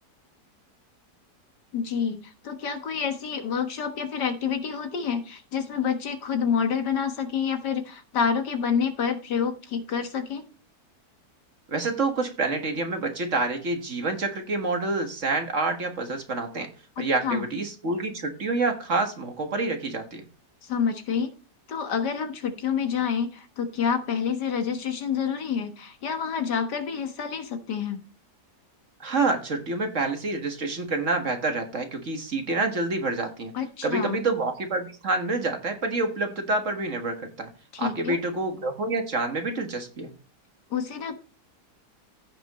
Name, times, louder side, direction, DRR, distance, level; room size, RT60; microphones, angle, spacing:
voice 1, 1.7-10.4 17.0-17.5 20.6-21.3 21.7-28.0 33.5-34.2 37.7-38.2 40.7-41.1, left 7 dB, 80° left, 7 dB, 2.0 m, -28 dB
voice 2, 11.7-16.7 17.0-20.2 29.0-33.5 33.8-37.5 37.8-40.1, right 3 dB, 50° right, 5 dB, 1.9 m, -27 dB
15.5 x 6.0 x 3.1 m, 0.36 s
omnidirectional pair, 1.8 m